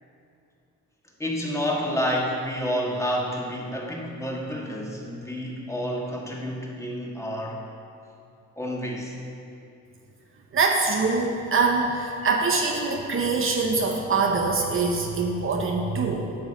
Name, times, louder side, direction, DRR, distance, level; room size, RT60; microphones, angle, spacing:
voice 1, 1.2-7.6 8.6-9.1, equal, 10° left, -3 dB, 1.6 m, -29 dB
voice 2, 10.5-16.3, right 4 dB, 45° right, 1 dB, 0.9 m, -24 dB
10.5 x 4.7 x 6.6 m, 2.6 s
cardioid pair, 90°, 30 cm